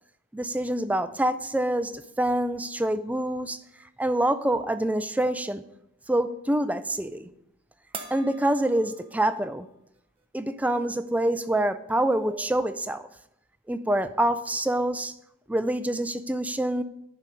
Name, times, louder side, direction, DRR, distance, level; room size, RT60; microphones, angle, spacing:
voice 1, 0.3-3.6 4.0-5.6 6.1-7.3 8.1-9.7 10.3-13.1 13.7-15.1 15.5-16.8, right 1 dB, 5° right, 11 dB, 0.3 m, -26 dB
sound 1, 7.9-9.6 10.0-10.1 11.6-11.7 12.0-12.7, right 4 dB, 25° right, 0.7 m, -44 dB
11.0 x 4.3 x 5.2 m, 0.81 s
head